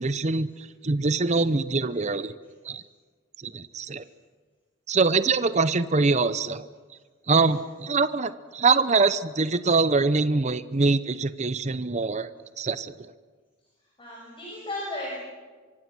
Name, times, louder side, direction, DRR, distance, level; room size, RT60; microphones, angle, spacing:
voice 1, 0.0-2.3 2.6-2.8 3.4-4.0 4.9-6.7 7.3-12.3 12.6-12.9, right 3 dB, 35° right, 14 dB, 0.7 m, -24 dB
voice 2, 14.0-15.2, left 1 dB, 25° left, -4 dB, 5.9 m, -35 dB
24.5 x 23.5 x 6.2 m, 1.5 s
head